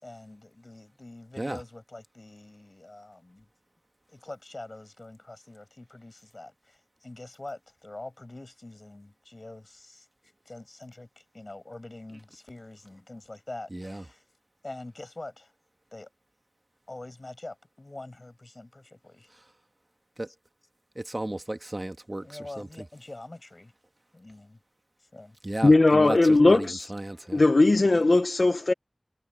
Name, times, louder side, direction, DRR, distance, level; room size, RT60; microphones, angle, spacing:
voice 1, 0.0-3.5 4.1-10.1 10.4-14.2 14.6-15.5 15.9-16.1 16.9-19.3 20.3-20.4 22.2-23.7 24.1-24.6 25.0-25.4, left 2 dB, 50° left, 6.6 m, -44 dB
voice 2, 13.7-14.0 20.2-20.3 21.0-22.2 22.6-22.7 25.4-27.4, right 1 dB, 40° right, 1.6 m, -34 dB
voice 3, 25.6-26.9 27.3-28.7, left 2 dB, 75° left, 0.7 m, -19 dB
wide cardioid pair, 45°, 0 cm